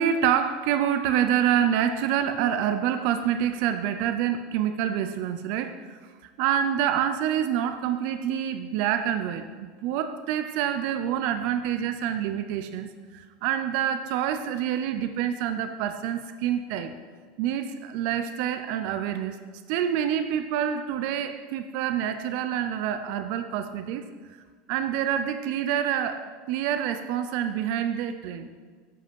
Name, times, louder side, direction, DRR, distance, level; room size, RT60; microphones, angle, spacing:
voice 1, 0.0-6.0 6.4-16.9 17.4-19.4 19.7-24.1 24.7-28.5, right 9 dB, 50° right, 9 dB, 0.5 m, -27 dB
7.8 x 7.7 x 5.4 m, 1.6 s
supercardioid pair, 165°, 3 cm